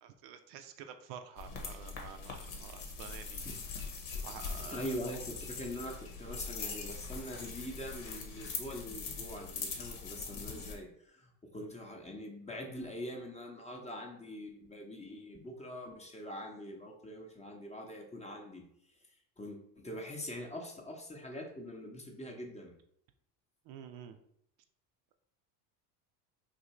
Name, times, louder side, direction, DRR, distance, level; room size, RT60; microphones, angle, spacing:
voice 1, 0.0-3.4 4.2-5.0 11.6-11.7 23.7-24.2, right 8 dB, 65° right, 7 dB, 0.5 m, -49 dB
sound 1, 1.4-10.7, left 4 dB, 75° left, 1.0 m, -42 dB
voice 2, 3.4-18.6 19.4-22.7, equal, 15° left, 1 dB, 0.7 m, -44 dB
2.7 x 2.6 x 4.1 m, 0.72 s
supercardioid pair, 85°, 47 cm